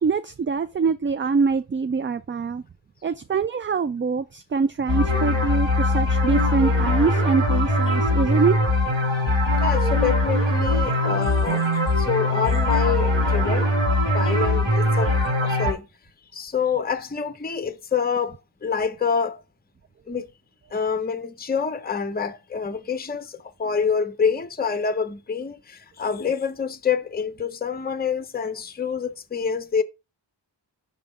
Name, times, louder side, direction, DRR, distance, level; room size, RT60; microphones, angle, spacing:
voice 1, 0.0-2.6 3.0-8.6, right 5 dB, 30° right, 0.3 m, -24 dB
sound 1, 4.9-15.7, left 1 dB, 85° right, 2.8 m, -21 dB
voice 2, 9.6-11.7 12.0-13.7 14.1-15.9 16.3-19.4 20.1-20.3 20.7-29.8, left 6 dB, 20° left, 0.6 m, -27 dB
6.2 x 3.5 x 5.3 m
wide cardioid pair, 50°, 44 cm